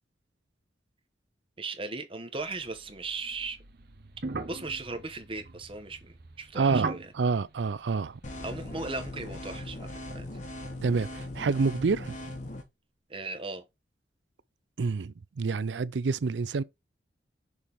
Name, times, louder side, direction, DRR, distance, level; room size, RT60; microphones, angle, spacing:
voice 1, 1.6-3.6 4.4-7.0 8.4-10.2 13.1-13.6, right 3 dB, 30° right, 1.0 m, -37 dB
sound 1, 2.4-8.9, right 3 dB, 60° right, 1.0 m, -40 dB
voice 2, 6.5-8.2 10.8-12.2 14.8-16.6, right 4 dB, 85° right, 0.5 m, -28 dB
sound 2, 8.2-12.6, left 1 dB, 45° left, 1.3 m, -39 dB
6.3 x 3.6 x 4.6 m
head